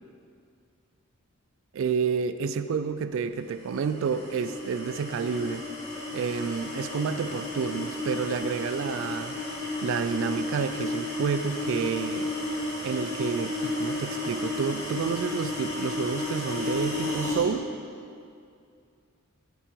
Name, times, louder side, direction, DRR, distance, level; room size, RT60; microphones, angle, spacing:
voice 1, 1.7-5.6 6.1-9.4 9.8-12.3 12.8-17.7, right 6 dB, 65° right, 11 dB, 0.3 m, -29 dB
sound 1, 3.6-17.5, left 2 dB, 30° left, 1.7 m, -33 dB
8.9 x 8.5 x 3.1 m, 2.4 s
head